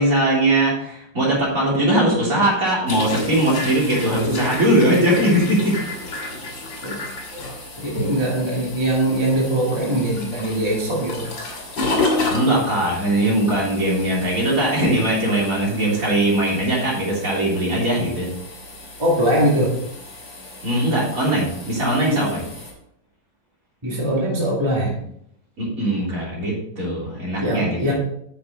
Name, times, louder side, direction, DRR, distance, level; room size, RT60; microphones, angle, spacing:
voice 1, 0.0-5.8 12.3-18.3 20.6-22.5 25.6-27.9, right 1 dB, 45° right, -5 dB, 3.8 m, -20 dB
sound 1, 2.9-22.7, left 2 dB, 85° left, 3.3 m, -31 dB
voice 2, 7.8-11.3 19.0-19.8 23.8-24.9 27.4-27.9, right 1 dB, 15° right, -5 dB, 2.2 m, -21 dB
9.4 x 7.3 x 3.9 m, 0.71 s
omnidirectional pair, 2.0 m